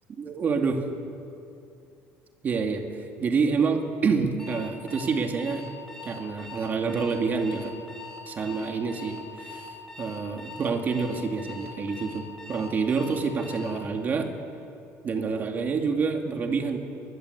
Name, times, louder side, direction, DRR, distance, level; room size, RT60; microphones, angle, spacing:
voice 1, 0.2-0.8 2.4-2.8 3.2-5.6 6.0-7.7 8.3-9.6 10.0-12.2 12.5-14.3 15.0-16.8, right 5 dB, 30° right, 4 dB, 2.3 m, -27 dB
Alarm, 4.4-13.8, left 2 dB, 10° left, 4.4 m, -42 dB
23.0 x 20.5 x 8.2 m, 2.6 s
cardioid pair, 160°, 6 cm